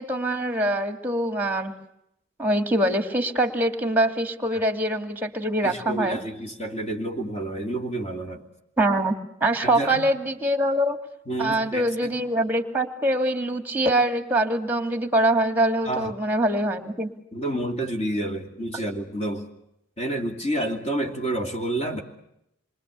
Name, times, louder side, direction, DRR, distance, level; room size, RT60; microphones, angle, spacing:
voice 1, 0.0-1.7 2.4-6.2 8.8-9.2 9.4-11.0 11.4-17.1, right 1 dB, 10° right, 8 dB, 2.3 m, -24 dB
voice 2, 5.6-8.4 9.6-10.1 11.3-12.1 15.8-16.1 17.3-19.5 20.0-22.0, right 1 dB, 30° left, 3 dB, 2.6 m, -29 dB
27.5 x 24.5 x 8.2 m, 0.81 s
head